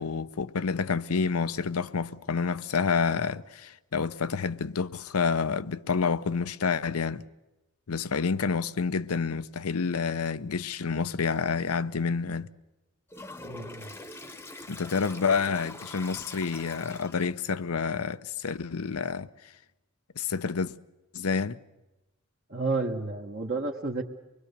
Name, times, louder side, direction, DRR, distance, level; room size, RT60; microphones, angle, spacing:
voice 1, 0.0-7.2 7.9-12.5 14.7-19.3 20.2-20.8 21.1-21.6, left 5 dB, 90° left, 0.7 m, -28 dB
Toilet flush, 13.1-17.5, left 2 dB, 10° left, 0.9 m, -43 dB
voice 2, 13.4-13.9 22.5-24.0, right 3 dB, 45° right, 1.2 m, -31 dB
25.0 x 21.5 x 6.7 m
head